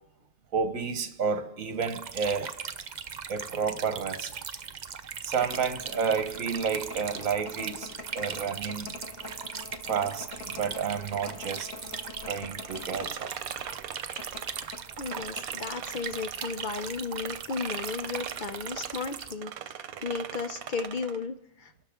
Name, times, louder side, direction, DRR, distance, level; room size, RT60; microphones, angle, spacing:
voice 1, 0.5-2.5 3.3-4.3 5.2-9.0 9.9-11.7 12.2-13.3, right 6 dB, 70° right, 1.5 m, -30 dB
sound 1, 1.8-19.3, right 6 dB, 50° right, 0.6 m, -39 dB
sound 2, 5.4-13.2 13.4-13.5 14.2-15.9 16.1-16.2, left 4 dB, 70° left, 1.5 m, -44 dB
Metal Clang, 12.4-16.9 17.2-21.2, right 9 dB, 90° right, 1.2 m, -40 dB
voice 2, 15.0-19.5 20.0-21.3 21.6-21.7, left 5 dB, 55° left, 0.5 m, -34 dB
29.0 x 12.0 x 3.7 m
omnidirectional pair, 1.5 m